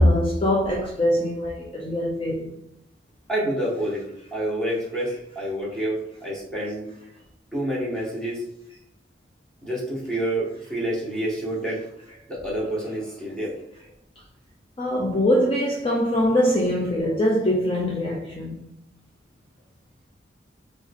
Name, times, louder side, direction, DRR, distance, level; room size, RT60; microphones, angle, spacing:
voice 1, 0.0-2.5 14.8-18.6, left 1 dB, 30° left, 0.5 m, -22 dB
voice 2, 3.3-4.0 4.3-6.9 7.5-8.4 9.6-11.8 12.3-13.5, right 1 dB, 5° left, 1.4 m, -28 dB
3.6 x 3.5 x 3.5 m
head